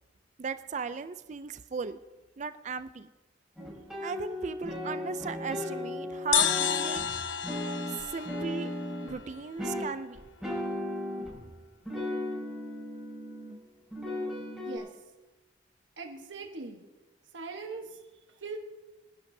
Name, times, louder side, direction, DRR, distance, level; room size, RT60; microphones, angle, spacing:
voice 1, 0.4-2.0 2.4-3.1 4.0-7.2 7.9-8.7 9.0-10.2, right 5 dB, 40° right, 12 dB, 0.4 m, -36 dB
sound 1, 3.6-9.2 9.6-11.5 11.9-13.6 13.9-14.8, left 1 dB, 5° right, 5.7 m, -36 dB
sound 2, 6.3-9.8, left 10 dB, 85° left, 0.6 m, -31 dB
voice 2, 14.6-15.0 16.0-16.8 17.3-18.0 18.3-18.6, right 4 dB, 85° right, 3 dB, 1.2 m, -41 dB
25.0 x 11.5 x 2.7 m, 1.1 s
head